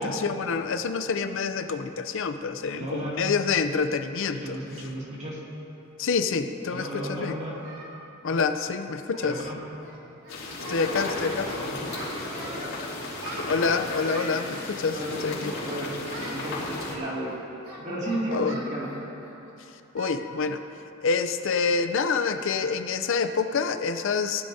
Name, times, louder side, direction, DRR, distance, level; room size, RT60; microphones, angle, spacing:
voice 1, 0.0-4.6 6.0-7.4 8.2-9.4 10.7-11.5 13.5-15.5 18.3-18.5 19.9-20.6 21.0-24.4, left 5 dB, 65° left, 8 dB, 0.5 m, -27 dB
voice 2, 2.8-3.2 4.4-5.4 6.7-7.6 9.2-9.6 11.4-11.7 12.4-12.7 14.9-15.2 15.5-15.9 16.3-17.3 17.8-18.9, right 1 dB, 35° right, -5 dB, 2.4 m, -33 dB
Singing, 5.9-6.0 6.7-7.9 8.2-8.4 8.7-8.8 9.1-9.5 9.7-10.0 10.2-11.1 11.4-12.7 13.2-14.4 15.1-15.7 16.0-16.4 16.8-19.5 20.0-20.2 20.5-20.7 21.1-21.2 21.7-22.0, right 1 dB, 90° right, 2.7 m, -42 dB
sound 1, 10.3-17.0, left 2 dB, 85° left, 3.1 m, -34 dB
18.0 x 11.5 x 2.7 m, 2.8 s
head